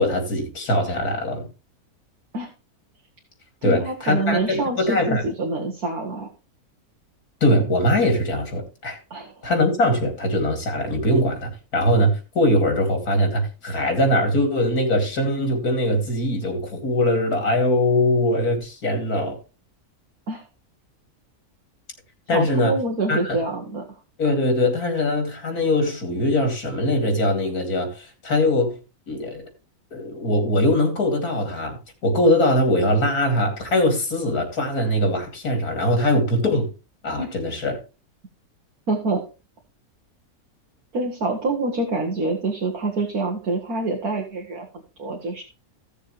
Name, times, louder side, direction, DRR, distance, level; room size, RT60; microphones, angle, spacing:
voice 1, 0.0-1.4 3.6-5.2 7.4-9.0 9.4-19.4 22.3-22.7 23.1-23.4 24.2-28.7 29.1-29.5 29.9-36.7 37.0-37.8, left 1 dB, 80° left, 3.1 m, -21 dB
voice 2, 3.6-6.3 9.1-9.5 20.3-20.4 22.3-23.8 37.2-37.3 38.9-39.2 40.9-44.7 45.0-45.4, right 2 dB, 75° right, 2.1 m, -26 dB
16.0 x 6.8 x 3.2 m
omnidirectional pair, 1.6 m